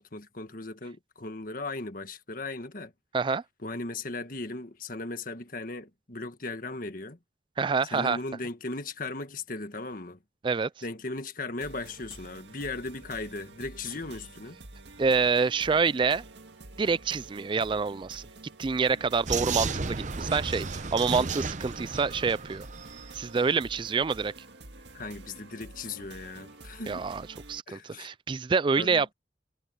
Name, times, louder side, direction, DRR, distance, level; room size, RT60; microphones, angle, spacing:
voice 1, 0.0-2.9 3.6-7.2 7.9-10.2 10.8-14.6 24.9-27.1 27.7-28.1 28.8-29.0, left 3 dB, 50° left, 1.7 m, -37 dB
voice 2, 7.6-8.2 10.4-10.7 15.0-16.2 16.8-18.2 18.6-22.7 23.1-24.3 26.9-29.1, right 5 dB, 30° right, 0.3 m, -27 dB
sound 1, 11.6-27.6, right 2 dB, 90° right, 1.9 m, -48 dB
Vehicle, 19.3-23.2, right 4 dB, 45° right, 0.9 m, -33 dB
head